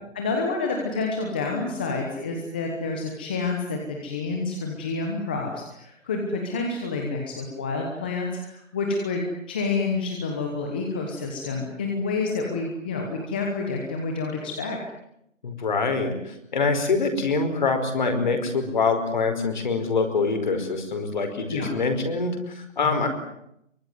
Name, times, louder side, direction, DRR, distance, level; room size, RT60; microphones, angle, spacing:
voice 1, 0.1-14.8 21.5-21.7 22.8-23.1, left 3 dB, 10° left, 1 dB, 1.0 m, -28 dB
voice 2, 15.4-23.1, left 4 dB, 35° left, 7 dB, 5.1 m, -25 dB
24.0 x 23.5 x 9.5 m, 0.76 s
figure-of-eight pair, 165°, 38 cm